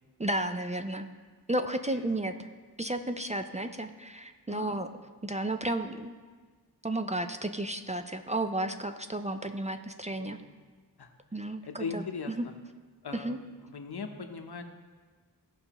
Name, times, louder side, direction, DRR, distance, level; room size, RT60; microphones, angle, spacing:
voice 1, 0.2-1.1 1.5-2.3 2.8-4.9 5.2-6.1 6.8-10.4 11.3-12.4 13.1-13.4, right 1 dB, 20° right, 7 dB, 0.4 m, -33 dB
voice 2, 11.6-12.5 13.0-13.4 13.6-14.6, left 5 dB, 75° left, 5 dB, 0.9 m, -39 dB
16.0 x 5.5 x 2.9 m, 1.5 s
wide cardioid pair, 70°, 39 cm